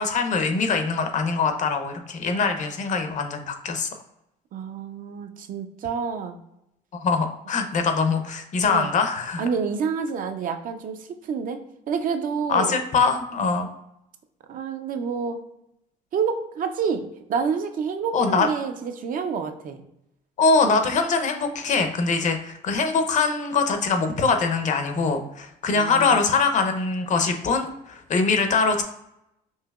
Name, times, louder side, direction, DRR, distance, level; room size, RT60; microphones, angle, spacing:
voice 1, 0.0-3.9 7.0-9.4 12.5-13.7 18.1-18.5 20.4-28.8, left 4 dB, 45° left, 6 dB, 0.6 m, -23 dB
voice 2, 4.5-6.4 8.7-8.9 9.4-11.6 11.9-12.8 14.5-15.4 16.1-19.8 25.7-26.2, right 6 dB, 55° right, 7 dB, 0.5 m, -28 dB
5.5 x 2.8 x 2.3 m, 0.83 s
cardioid pair, 110°, 17 cm